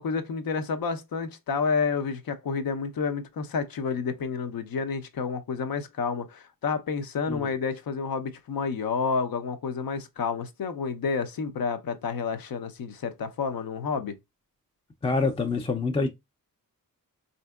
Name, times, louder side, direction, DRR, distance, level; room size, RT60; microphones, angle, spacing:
voice 1, 0.0-14.2, left 5 dB, 80° left, 0.7 m, -30 dB
voice 2, 15.0-16.1, left 3 dB, 15° left, 0.4 m, -26 dB
4.3 x 2.6 x 2.3 m
wide cardioid pair, 160°, 35 cm